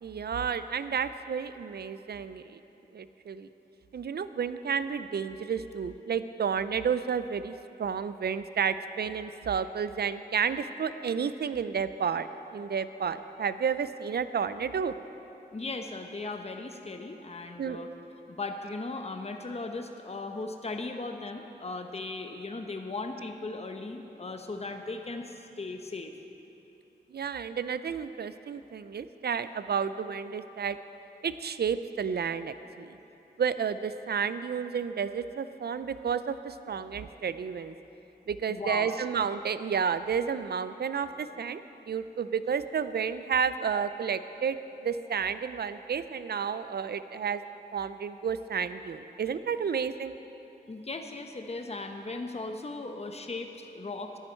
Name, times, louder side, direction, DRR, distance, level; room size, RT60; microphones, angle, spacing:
voice 1, 0.0-2.6 2.9-3.5 3.9-14.9 17.6-17.8 27.1-30.8 31.2-33.0 33.4-37.7 38.3-41.6 41.9-44.6 44.8-47.4 47.7-50.1, right 7 dB, 65° right, 13 dB, 0.5 m, -31 dB
voice 2, 15.5-17.9 18.3-26.1 38.5-38.9 50.7-54.2, left 3 dB, 35° left, 5 dB, 0.9 m, -37 dB
13.5 x 10.5 x 4.4 m, 3.0 s
cardioid pair, 45°, 18 cm